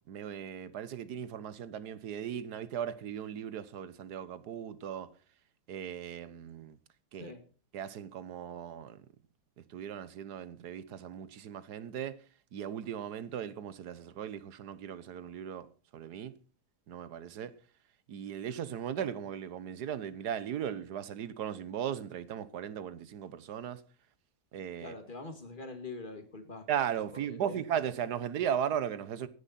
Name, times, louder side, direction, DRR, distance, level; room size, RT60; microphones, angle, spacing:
voice 1, 0.1-5.1 5.7-6.8 7.1-7.3 7.7-9.0 9.6-12.2 12.5-15.7 15.9-16.3 16.9-17.5 18.1-23.8 24.5-24.9 26.7-29.3, right 9 dB, 80° right, 1.5 m, -37 dB
voice 2, 24.8-26.7 27.2-27.6, left 3 dB, 30° left, 2.0 m, -44 dB
15.5 x 10.0 x 4.2 m
omnidirectional pair, 1.7 m